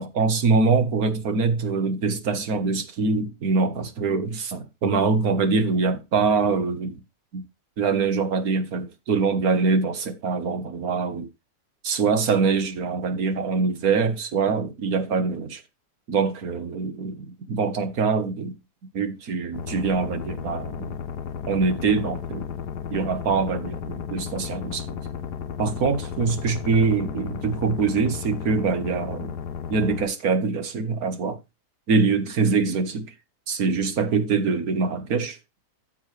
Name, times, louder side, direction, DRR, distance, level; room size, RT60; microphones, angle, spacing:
voice 1, 0.0-7.0 7.3-7.4 7.8-11.3 11.8-15.6 16.1-18.5 18.9-21.0 21.5-22.6 22.9-25.0 25.6-29.3 29.7-31.4 31.9-33.1 33.5-35.4, right 4 dB, 65° right, 1.8 m, -24 dB
sound 1, 19.5-30.0, left 7 dB, 80° left, 1.6 m, -34 dB
14.0 x 7.0 x 3.4 m
omnidirectional pair, 1.7 m